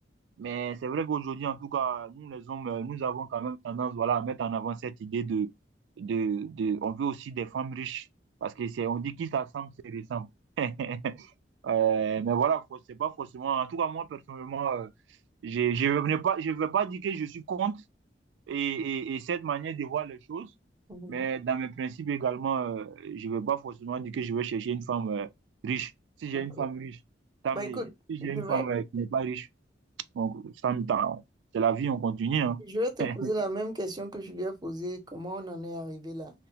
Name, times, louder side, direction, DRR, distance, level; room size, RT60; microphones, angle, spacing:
voice 1, 0.4-5.5 6.0-8.1 8.4-10.3 10.6-11.3 11.6-14.9 15.4-17.8 18.5-20.5 21.1-25.3 25.6-25.9 26.2-27.0 27.4-27.8 28.1-29.5 30.1-31.2 31.5-32.6 33.0-33.3, right 7 dB, 85° right, 0.3 m, -30 dB
voice 2, 20.9-21.2 26.3-26.7 27.5-27.9 28.2-28.6 32.6-36.3, right 1 dB, 25° right, 0.6 m, -34 dB
2.8 x 2.0 x 2.7 m
head